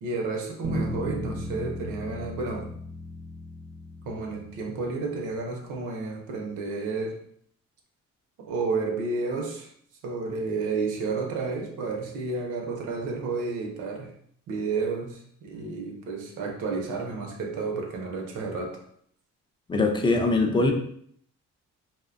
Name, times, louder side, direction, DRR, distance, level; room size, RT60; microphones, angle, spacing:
voice 1, 0.0-2.7 4.0-7.2 8.4-9.7 10.0-14.2 14.5-18.8, right 3 dB, 80° right, 1 dB, 0.7 m, -31 dB
sound 1, 0.6-5.0, equal, 45° right, 0.5 m, -36 dB
voice 2, 19.7-20.7, left 3 dB, 15° left, 3 dB, 0.4 m, -22 dB
2.6 x 2.1 x 2.4 m, 0.64 s
cardioid pair, 90°, 30 cm